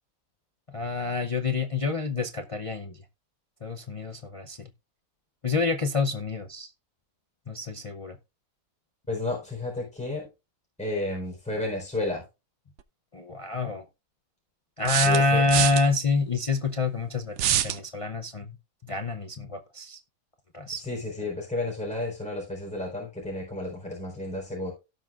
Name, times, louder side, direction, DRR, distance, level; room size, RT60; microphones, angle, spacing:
voice 1, 0.7-3.0 3.6-4.7 5.4-6.7 7.5-8.2 13.1-13.8 14.8-18.6 18.8-20.0 20.5-20.8, left 3 dB, 35° left, 0.6 m, -27 dB
voice 2, 9.1-10.3 10.8-12.2 15.0-15.4 20.8-24.7, left 2 dB, 5° left, 4.1 m, -32 dB
sound 1, 12.8-12.9 14.8-15.8 17.4-17.8, right 11 dB, 65° right, 0.8 m, -25 dB
17.0 x 6.0 x 2.5 m
omnidirectional pair, 1.5 m